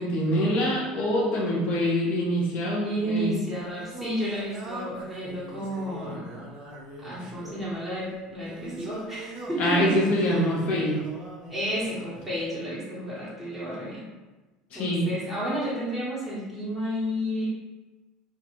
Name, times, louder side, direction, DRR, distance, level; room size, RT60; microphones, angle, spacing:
voice 1, 0.0-3.3 9.6-11.0 14.7-15.1, equal, 55° left, -3 dB, 0.6 m, -25 dB
voice 2, 2.8-6.5 7.0-10.4 11.5-14.0 14.7-17.5, equal, 10° right, -8 dB, 1.3 m, -31 dB
Singing, 3.4-12.3, right 1 dB, 45° right, 0.7 m, -42 dB
2.4 x 2.2 x 3.0 m, 1.2 s
supercardioid pair, 90°, 3 cm